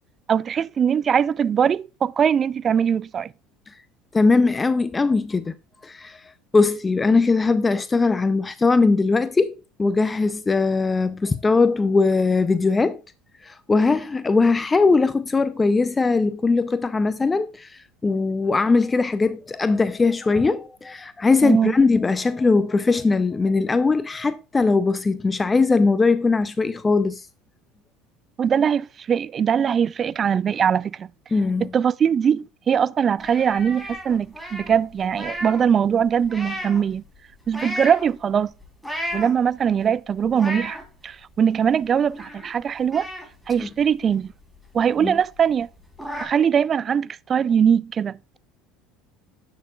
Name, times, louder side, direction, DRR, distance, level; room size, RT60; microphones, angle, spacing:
voice 1, 0.3-3.3 21.4-21.8 28.4-31.1 31.6-37.0 37.5-38.5 39.1-40.8 41.0-43.1 43.5-44.3 44.7-45.7 46.2-48.2, right 7 dB, 40° right, 0.3 m, -21 dB
voice 2, 4.1-5.5 5.8-6.2 6.5-13.0 13.4-27.3 31.3-31.7 43.6-43.7 45.0-45.2, left 4 dB, 20° left, 0.5 m, -20 dB
sound 1, 33.2-35.7 36.0-36.9 37.5-38.0 38.6-39.6 40.1-40.8 41.3-41.4 41.7-42.6 42.9-44.4 44.8-44.9 45.2-45.3 45.6-46.3, equal, 5° left, 3.3 m, -34 dB
10.0 x 6.5 x 2.3 m
hypercardioid pair, 85°, 0 cm